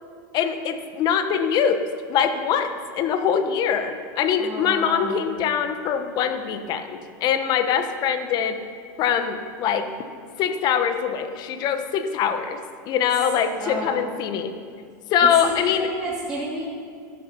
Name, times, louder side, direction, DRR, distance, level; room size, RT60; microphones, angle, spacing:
voice 1, 0.3-8.6 9.0-9.9 10.4-12.6 12.9-14.5 15.1-15.9, left 8 dB, 40° left, 8 dB, 1.2 m, -23 dB
voice 2, 4.4-5.3 13.3-14.0 15.4-16.6, equal, 5° right, -8 dB, 3.0 m, -31 dB
13.5 x 11.0 x 5.4 m, 2.2 s
supercardioid pair, 120°, 10 cm